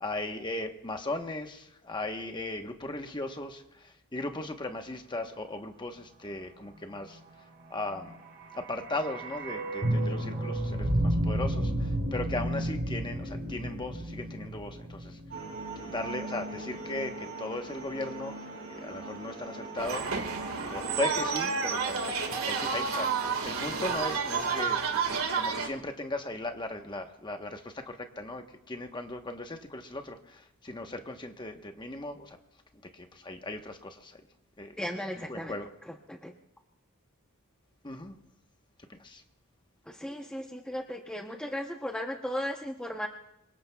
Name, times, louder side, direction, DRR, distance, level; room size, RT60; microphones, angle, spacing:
voice 1, 0.0-7.2 7.7-8.2 8.5-15.2 15.8-20.1 20.7-23.1 23.4-24.8 25.3-32.4 32.9-34.2 34.6-34.8 35.3-35.7 37.8-38.2 38.9-39.2, left 2 dB, 20° left, 5 dB, 1.0 m, -37 dB
sound 1, 8.1-16.3 16.5-16.6, right 1 dB, 45° right, 3.1 m, -32 dB
sound 2, 15.3-23.9, right 2 dB, 65° right, 7.8 m, -41 dB
sound 3, 19.8-25.7, right 5 dB, 80° right, 1.7 m, -30 dB
voice 2, 34.8-35.6 35.9-36.3 39.9-43.1, equal, 5° left, 1 dB, 0.7 m, -36 dB
26.5 x 23.0 x 2.3 m, 0.82 s
head